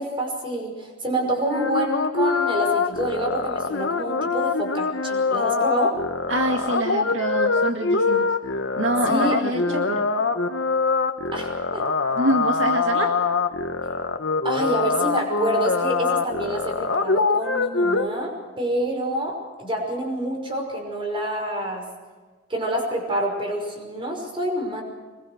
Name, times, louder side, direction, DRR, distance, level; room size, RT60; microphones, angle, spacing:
voice 1, 0.0-5.9 9.1-9.4 9.6-9.8 11.3-11.8 14.4-21.8 22.5-24.8, right 1 dB, 25° right, 1 dB, 5.6 m, -27 dB
sound 1, 1.5-18.1, left 4 dB, 65° left, 1.4 m, -24 dB
voice 2, 6.3-8.3 8.8-10.0 12.1-13.2, right 1 dB, 75° right, 3 dB, 2.1 m, -25 dB
24.5 x 22.0 x 6.5 m, 1.4 s
head